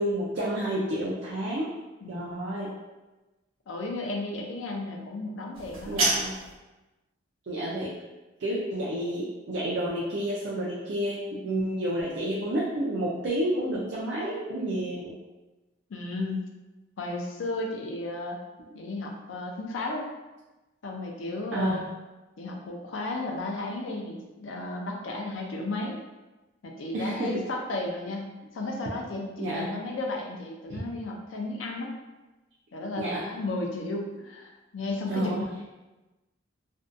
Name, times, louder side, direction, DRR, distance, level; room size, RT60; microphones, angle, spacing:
voice 1, 0.0-1.7 2.1-2.7 5.9-6.4 7.5-7.9 8.4-15.2 21.5-21.8 26.9-27.4 29.4-29.7 30.7-30.8 33.0-33.2 35.1-35.5, right 1 dB, 55° right, -4 dB, 0.4 m, -30 dB
voice 2, 2.0-2.5 3.7-6.1 15.9-16.5 17.0-18.4 18.7-20.1 20.8-21.9 22.4-26.0 26.6-31.9 32.7-35.6, left 2 dB, 70° left, 1 dB, 0.4 m, -34 dB
sound 1, 5.5-6.6, right 2 dB, 90° right, 1.0 m, -28 dB
2.5 x 2.2 x 2.5 m, 1.1 s
head